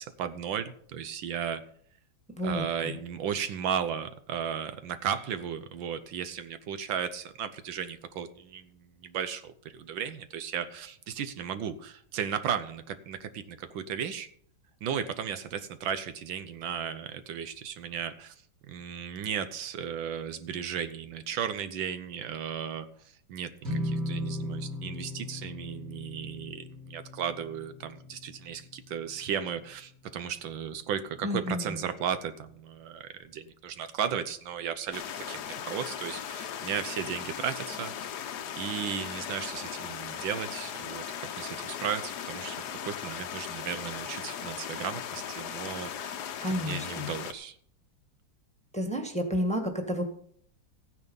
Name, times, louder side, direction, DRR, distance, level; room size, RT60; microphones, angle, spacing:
voice 1, 0.0-1.6 2.4-14.3 14.8-18.3 18.7-37.9 38.6-46.2 46.5-47.6, right 8 dB, 75° right, 10 dB, 1.5 m, -35 dB
voice 2, 2.4-2.9 31.2-31.8 46.4-47.1 48.7-50.0, equal, 5° left, 3 dB, 1.4 m, -31 dB
sound 1, 23.6-30.1, left 1 dB, 40° right, 2.8 m, -38 dB
sound 2, 34.9-47.3, left 9 dB, 60° left, 1.3 m, -38 dB
15.0 x 9.4 x 5.3 m, 0.62 s
omnidirectional pair, 2.2 m